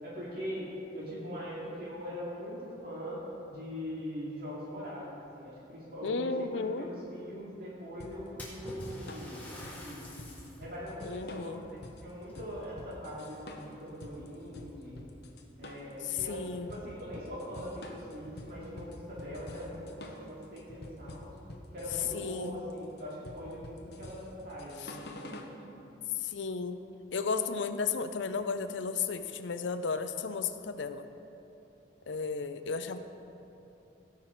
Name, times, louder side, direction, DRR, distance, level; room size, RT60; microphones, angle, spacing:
voice 1, 0.0-3.2 3.5-10.1 10.6-11.8 12.0-15.0 15.6-16.4 16.7-21.3 21.7-25.5, equal, 50° right, -7 dB, 2.5 m, -42 dB
voice 2, 6.0-6.9 11.0-11.6 16.0-16.8 22.1-22.6 24.8-24.9 26.2-26.8 27.1-31.0 32.1-33.0, left 5 dB, 75° left, 9 dB, 0.5 m, -34 dB
sound 1, 8.0-25.5, left 1 dB, 55° left, 0.9 m, -47 dB
Splash splatter, 8.4-10.7 11.2-11.3 12.2-13.2 13.6-14.1 14.9-15.0 15.4-15.5 17.7-17.8 18.1-18.2 18.8-18.9 19.3-19.4 20.1-20.7, left 1 dB, 10° left, 2.0 m, -47 dB
17.0 x 5.9 x 4.6 m, 2.8 s
head